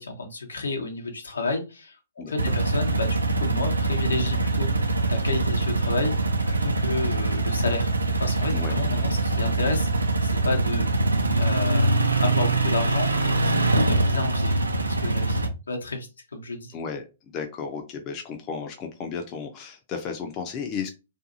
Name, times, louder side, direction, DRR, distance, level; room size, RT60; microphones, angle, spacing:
voice 1, 0.0-2.0 2.3-6.1 6.5-7.9 8.2-10.8 11.4-11.9 12.2-16.7, left 3 dB, 80° left, 3 dB, 0.9 m, -31 dB
voice 2, 2.2-2.6 8.5-8.7 16.7-20.9, left 6 dB, 30° left, 4 dB, 0.5 m, -34 dB
sound 1, 2.4-15.5, right 2 dB, 85° right, 0.5 m, -23 dB
2.6 x 2.6 x 2.5 m, 0.28 s
figure-of-eight pair, 115°, 0 cm